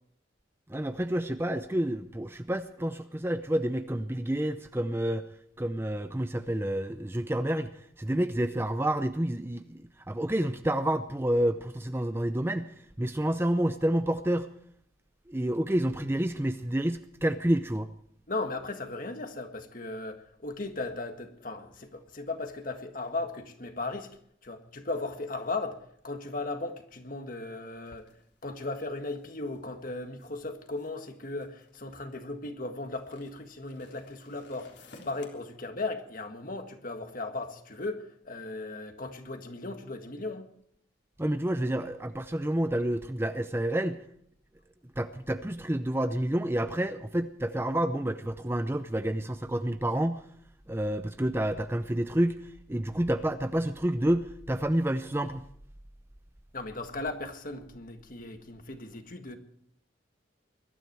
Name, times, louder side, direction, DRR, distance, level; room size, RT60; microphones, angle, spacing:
voice 1, 0.7-5.3 5.6-7.7 8.0-14.5 15.3-17.9 41.2-44.0 45.0-50.2 50.7-55.4, right 1 dB, 10° right, 10 dB, 0.6 m, -29 dB
voice 2, 18.3-24.1 24.4-28.1 28.4-40.5 56.5-59.4, left 2 dB, 45° left, 6 dB, 1.7 m, -37 dB
sound 1, 27.9-32.3 32.9-35.3, left 2 dB, 65° left, 3.6 m, -56 dB
21.5 x 12.5 x 4.6 m, 0.65 s
head